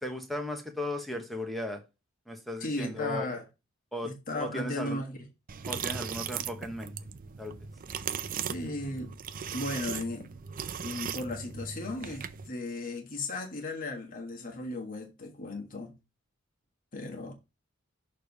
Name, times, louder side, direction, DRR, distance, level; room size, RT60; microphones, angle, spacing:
voice 1, 0.0-1.8 2.3-3.3 3.9-4.1 4.4-5.0 5.7-6.9 7.4-7.5, left 1 dB, ahead, 1.1 m, -36 dB
voice 2, 2.6-3.4 4.0-5.2 8.5-9.1 9.5-10.4 10.8-15.9 16.9-17.3, left 2 dB, 40° left, 1.5 m, -36 dB
sound 1, 5.5-12.5, right 7 dB, 40° right, 0.5 m, -38 dB
6.5 x 3.3 x 5.3 m
head